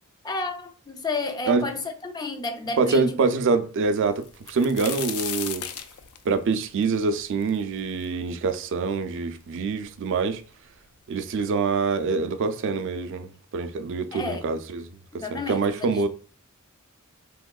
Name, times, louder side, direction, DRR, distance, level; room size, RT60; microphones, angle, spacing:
voice 1, 0.2-3.2 14.1-14.5 15.2-16.1, left 3 dB, 20° left, 0.4 m, -32 dB
voice 2, 2.8-5.7 6.3-10.4 11.1-14.9 15.1-16.1, right 4 dB, 60° right, 0.4 m, -25 dB
sound 1, 4.2-8.0 8.5-8.6 9.4-9.5 9.8-10.4 11.3-11.4 11.8-12.0, left 9 dB, 85° left, 0.4 m, -35 dB
3.5 x 2.9 x 2.2 m
head